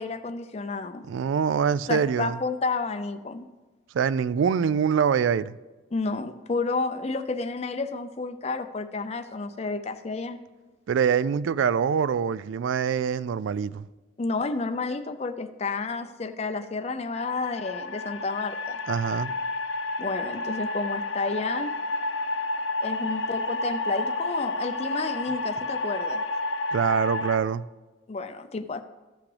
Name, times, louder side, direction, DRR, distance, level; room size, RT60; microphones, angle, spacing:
voice 1, 0.0-1.0 1.9-3.5 5.9-10.4 14.2-18.8 20.0-21.8 22.8-26.2 28.1-28.8, left 3 dB, 30° left, 0.5 m, -31 dB
voice 2, 1.1-2.4 3.9-5.6 10.9-13.9 18.9-19.3 26.7-27.6, right 7 dB, 70° right, 0.3 m, -24 dB
sound 1, 17.1-27.4, left 2 dB, 75° left, 0.7 m, -30 dB
14.5 x 5.9 x 3.3 m
head